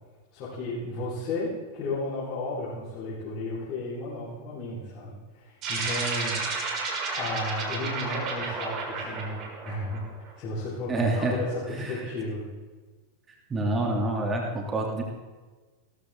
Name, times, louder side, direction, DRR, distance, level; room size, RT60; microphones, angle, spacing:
voice 1, 0.3-6.5 7.1-10.0 10.4-12.4, left 2 dB, 40° left, -10 dB, 5.1 m, -33 dB
sound 1, 5.6-10.3, right 4 dB, 35° right, 4.0 m, -32 dB
voice 2, 10.9-11.4 11.8-11.9 13.5-15.0, right 2 dB, 20° right, 0 dB, 3.0 m, -27 dB
16.5 x 13.5 x 3.9 m, 1.3 s
figure-of-eight pair, 90°, 0 cm